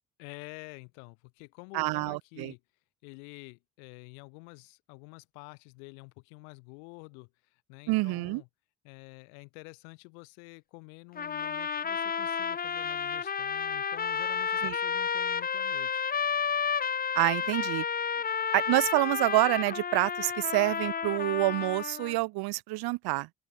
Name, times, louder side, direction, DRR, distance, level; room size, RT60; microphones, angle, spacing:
voice 1, 0.2-2.6 3.0-8.5 8.8-16.1, left 40 dB or more, 70° left, 1.6 m, -49 dB
voice 2, 1.7-2.5 7.9-8.4 14.6-14.8 17.1-17.8 18.5-23.3, right 21 dB, 60° right, 1.0 m, -27 dB
sound 1, 11.2-22.2, left 6 dB, 20° left, 0.7 m, -31 dB
open air
figure-of-eight pair, 50°, 42 cm